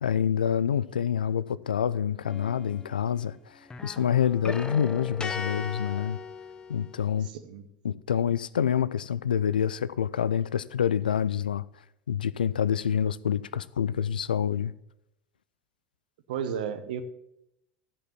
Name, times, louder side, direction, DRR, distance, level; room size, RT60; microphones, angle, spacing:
voice 1, 0.0-6.2 6.7-7.3 7.8-11.6 12.1-14.7, left 8 dB, 75° left, 0.3 m, -27 dB
sound 1, 2.3-3.3 3.6-7.2, left 4 dB, 15° left, 0.9 m, -38 dB
voice 2, 7.2-7.7 16.3-17.0, right 8 dB, 65° right, 0.9 m, -33 dB
13.0 x 5.3 x 5.8 m
figure-of-eight pair, 75°, 5 cm